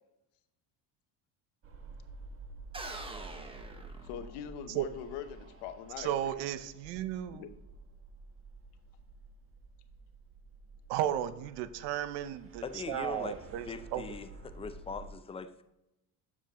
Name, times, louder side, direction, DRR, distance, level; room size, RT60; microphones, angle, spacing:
sound 1, 1.6-15.1, right 3 dB, 35° right, 1.1 m, -51 dB
sound 2, 2.7-4.7, right 2 dB, 15° right, 0.9 m, -44 dB
voice 1, 4.0-6.4 7.3-7.5, left 8 dB, 80° left, 9 dB, 0.9 m, -43 dB
voice 2, 6.0-7.4 10.9-13.7 13.9-14.0, right 11 dB, 80° right, 13 dB, 0.7 m, -34 dB
voice 3, 12.6-13.4 13.7-15.6, left 5 dB, 15° left, 10 dB, 0.4 m, -41 dB
7.1 x 7.1 x 3.0 m, 0.91 s
cardioid pair, 115°, 40 cm